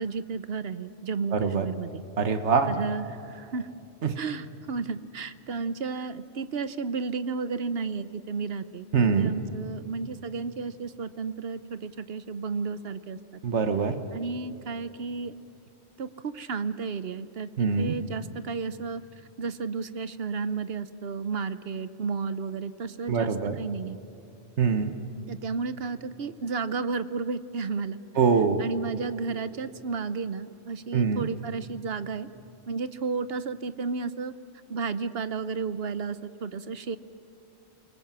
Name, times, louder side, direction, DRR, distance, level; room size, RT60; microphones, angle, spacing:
voice 1, 0.0-2.0 2.7-3.7 4.2-13.2 14.1-15.3 16.0-19.0 19.4-23.3 23.6-24.0 25.3-28.0 28.6-32.3 32.7-34.3 34.7-37.0, right 4 dB, 60° right, 13 dB, 1.0 m, -32 dB
voice 2, 1.3-1.7 2.2-2.7 4.0-4.1 8.9-9.3 13.4-14.0 17.6-17.9 23.1-23.6 24.6-24.9 28.2-28.6 30.9-31.3, right 5 dB, 75° right, 8 dB, 1.6 m, -24 dB
29.0 x 20.5 x 7.5 m, 2.7 s
omnidirectional pair, 1.2 m